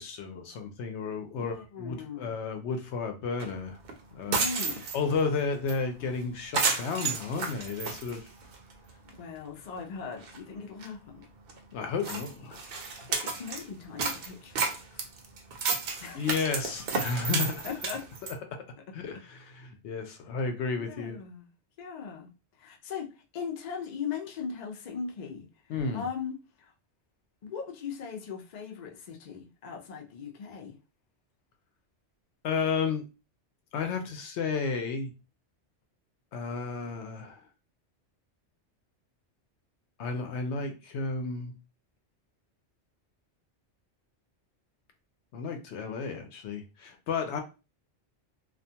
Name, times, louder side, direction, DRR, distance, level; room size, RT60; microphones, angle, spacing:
voice 1, 0.0-3.8 4.1-4.4 4.9-8.2 11.7-12.6 16.1-17.7 18.9-21.2 25.7-26.1 32.4-33.0 33.7-35.1 36.3-37.4 40.0-41.5 45.3-47.4, left 4 dB, 80° left, 0.9 m, -32 dB
voice 2, 1.4-2.3 4.3-4.9 9.0-11.2 12.1-12.2 13.1-15.1 16.0-16.3 17.6-18.1 18.8-18.9 20.8-21.5 21.8-26.7 27.4-30.8, left 6 dB, 55° left, 0.5 m, -39 dB
sound 1, 3.4-3.5 3.9-4.0 4.2-5.2 5.7-5.8 6.1-6.2 6.5-8.7 9.1-9.2 9.8-9.9 10.1-10.4 10.8-10.9 11.5-11.6 12.0-13.6 14.0-18.3, right 4 dB, 60° right, 0.7 m, -32 dB
2.4 x 2.2 x 2.7 m
omnidirectional pair, 1.2 m